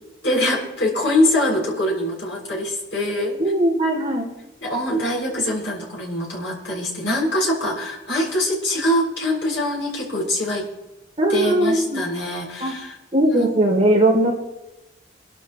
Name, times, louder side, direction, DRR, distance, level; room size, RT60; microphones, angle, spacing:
voice 1, 0.2-3.4 4.6-10.7 11.3-13.0 13.3-13.5, left 1 dB, 70° left, -3 dB, 6.9 m, -23 dB
voice 2, 3.4-4.3 11.2-12.0 12.6-12.7 13.1-14.3, right 1 dB, 30° right, -2 dB, 3.1 m, -19 dB
27.5 x 12.5 x 3.2 m, 0.99 s
head